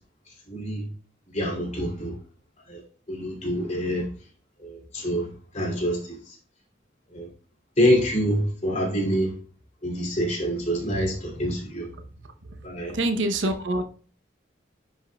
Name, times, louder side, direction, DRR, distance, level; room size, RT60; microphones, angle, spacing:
voice 1, 0.5-0.8 1.3-2.1 2.7-2.8 3.1-4.1 4.6-5.3 5.5-6.3 7.1-7.3 7.8-9.3 9.8-11.9 12.6-12.9, equal, 40° left, 2.6 m, -26 dB
voice 2, 12.9-13.8, right 1 dB, 90° right, 0.8 m, -26 dB
10.0 x 5.3 x 2.3 m
head